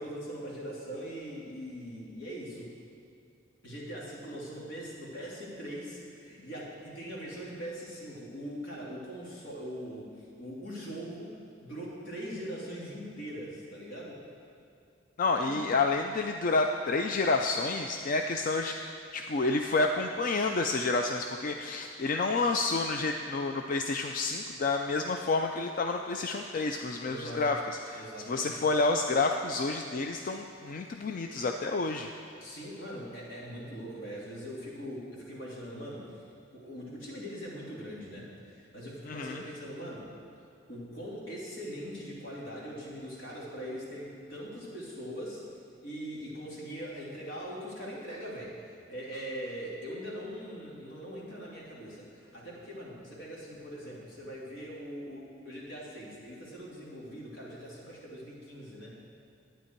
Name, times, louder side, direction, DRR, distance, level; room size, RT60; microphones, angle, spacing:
voice 1, 0.0-2.7 3.6-11.4 11.6-14.2 15.4-15.6 27.0-27.6 27.9-28.6 32.4-36.2 36.5-40.1 40.7-45.4 45.8-59.0, equal, 75° left, -5 dB, 2.7 m, -41 dB
voice 2, 15.2-18.7 19.1-32.1 39.1-39.4, left 3 dB, 45° left, 4 dB, 0.4 m, -29 dB
11.5 x 9.1 x 4.5 m, 2.5 s
head